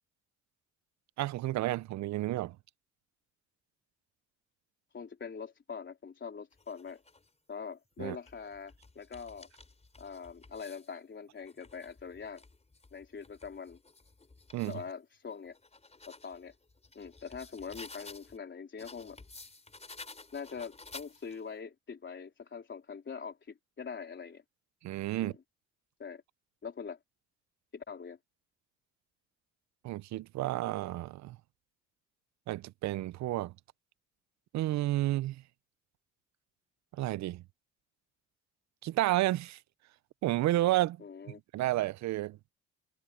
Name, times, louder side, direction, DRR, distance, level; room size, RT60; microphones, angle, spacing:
voice 1, 1.2-2.6 8.0-8.2 14.5-14.8 24.8-25.3 29.8-31.4 32.5-33.5 34.5-35.4 37.0-37.4 38.8-39.6 40.2-41.0 41.5-42.4, right 16 dB, 65° right, 0.5 m, -31 dB
voice 2, 4.9-7.0 7.5-9.5 10.0-12.4 12.9-13.8 14.6-15.6 16.1-16.5 17.0-19.2 20.3-24.4 25.2-25.4 26.0-26.2 26.6-27.0 27.7-28.2 41.0-41.4, left 6 dB, 40° left, 3.8 m, -43 dB
sound 1, 6.5-7.3 8.0-10.9 11.4-14.8 15.3-18.4 18.8-21.5, left 3 dB, 20° left, 4.5 m, -53 dB
cardioid pair, 90°, 30 cm